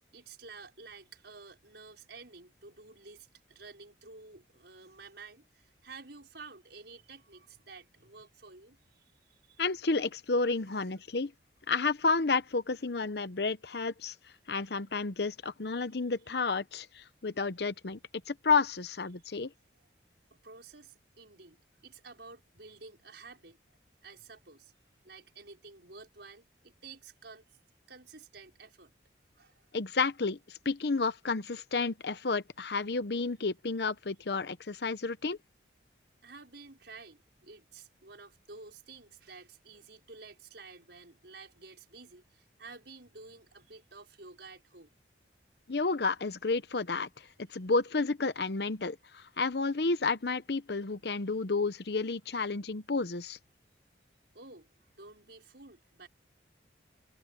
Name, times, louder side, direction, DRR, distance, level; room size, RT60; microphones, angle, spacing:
voice 1, 0.1-9.6 10.7-11.0 19.2-19.4 20.3-21.6 21.8-23.8 24.0-24.8 25.0-27.5 27.9-28.9 29.3-29.6 36.2-44.9 54.3-56.1, right 4 dB, 70° right, 5.2 m, -51 dB
voice 2, 9.6-11.3 11.7-14.1 14.5-18.0 18.3-19.5 29.7-35.4 45.7-53.4, left 4 dB, 60° left, 0.8 m, -31 dB
head